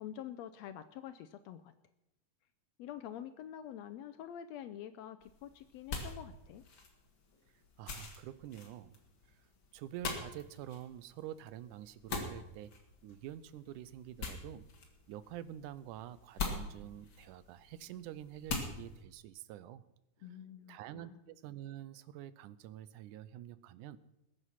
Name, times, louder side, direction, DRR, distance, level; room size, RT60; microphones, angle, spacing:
voice 1, 0.0-1.7 2.8-6.6 20.2-21.2, left 10 dB, 80° left, 11 dB, 1.6 m, -47 dB
sound 1, 5.2-19.0, left 4 dB, 40° left, 2.6 m, -45 dB
voice 2, 7.8-9.0 9.3-9.5 9.7-12.7 13.0-14.7 15.1-19.8 20.7-24.0, right 12 dB, 90° right, 16 dB, 2.2 m, -47 dB
20.5 x 8.0 x 5.8 m, 0.91 s
omnidirectional pair, 3.5 m